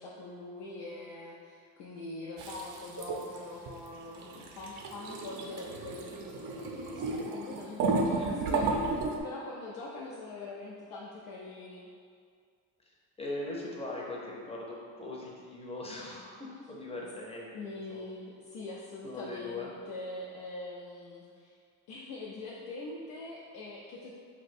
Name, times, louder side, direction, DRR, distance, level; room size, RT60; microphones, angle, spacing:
voice 1, 0.0-8.7 9.2-11.9 17.5-21.6 21.9-24.1, left 2 dB, 85° left, -5 dB, 0.5 m, -43 dB
sound 1, 2.4-3.4 3.7-3.9 4.1-9.2, right 3 dB, 70° right, 0.5 m, -33 dB
voice 2, 8.2-8.6 12.8-18.0 19.0-19.7, left 2 dB, 20° left, -3 dB, 0.5 m, -40 dB
2.5 x 2.2 x 4.0 m, 2.2 s
cardioid pair, 115°, 33 cm